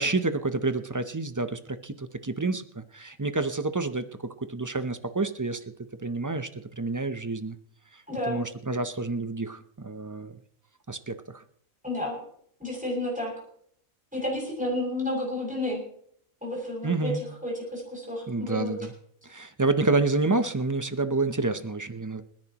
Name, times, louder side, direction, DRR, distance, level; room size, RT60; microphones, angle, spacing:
voice 1, 0.0-5.6 6.0-7.5 7.9-10.3 10.9-11.4 16.8-17.2 18.3-18.9 19.2-22.2, right 3 dB, 30° right, 10 dB, 0.3 m, -29 dB
voice 2, 8.1-8.4 11.8-12.2 12.6-13.3 14.1-15.8 16.4-17.1 17.4-18.7, left 1 dB, 5° right, -2 dB, 6.6 m, -31 dB
28.5 x 10.5 x 3.0 m, 0.64 s
omnidirectional pair, 1.4 m